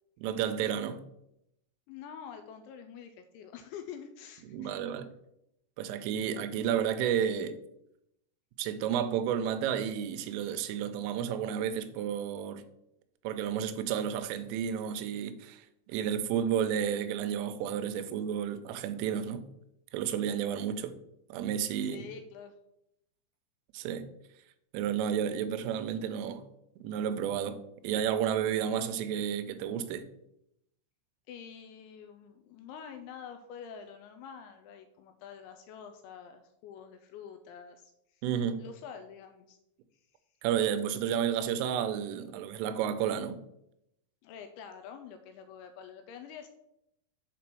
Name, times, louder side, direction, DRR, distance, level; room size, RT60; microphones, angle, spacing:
voice 1, 0.2-1.0 4.5-5.1 5.8-7.6 8.6-12.6 13.2-19.5 19.9-21.0 21.3-22.1 23.7-24.1 24.7-26.4 26.8-30.1 38.2-38.6 40.4-43.4, right 9 dB, 90° right, 3.2 m, -31 dB
voice 2, 1.9-4.8 21.8-22.5 31.3-38.2 38.6-39.6 44.2-46.5, left 7 dB, 85° left, 2.7 m, -47 dB
7.7 x 4.2 x 6.0 m
omnidirectional pair, 5.6 m